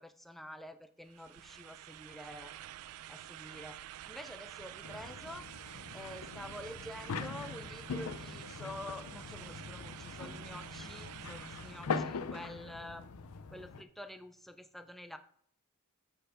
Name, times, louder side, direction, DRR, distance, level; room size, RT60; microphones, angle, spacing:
voice 1, 0.0-2.5 3.1-3.8 4.0-5.5 5.9-13.0 13.5-15.2, equal, ahead, 8 dB, 0.4 m, -48 dB
sound 1, 1.1-11.9, right 12 dB, 80° right, 0.3 m, -49 dB
sound 2, 4.8-13.8, left 4 dB, 75° left, 0.5 m, -42 dB
7.5 x 4.5 x 5.0 m, 0.64 s
head